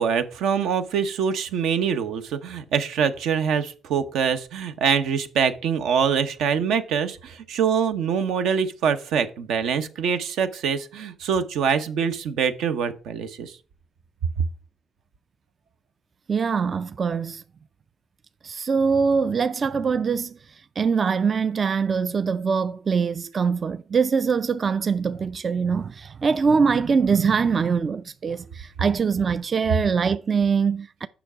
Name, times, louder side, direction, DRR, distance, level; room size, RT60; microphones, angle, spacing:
voice 1, 0.0-13.6, right 7 dB, 85° right, 0.8 m, -24 dB
voice 2, 16.3-17.4 18.4-31.1, right 5 dB, 40° right, 0.3 m, -23 dB
7.0 x 5.8 x 4.8 m
cardioid pair, 90°, 0 cm